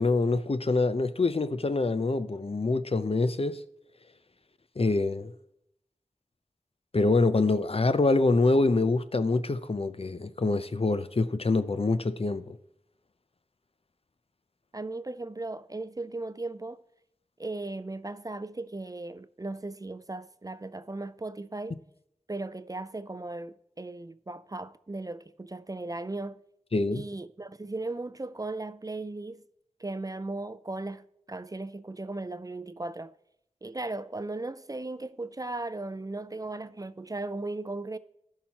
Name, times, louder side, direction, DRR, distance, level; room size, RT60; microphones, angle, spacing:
voice 1, 0.0-3.6 4.8-5.3 6.9-12.6 26.7-27.0, left 3 dB, 50° left, 0.5 m, -25 dB
voice 2, 14.7-16.8 17.4-21.8 22.3-26.4 26.9-29.4 29.8-33.1 33.6-38.0, right 2 dB, 30° right, 0.3 m, -37 dB
14.5 x 5.7 x 2.9 m
wide cardioid pair, 50°, 13 cm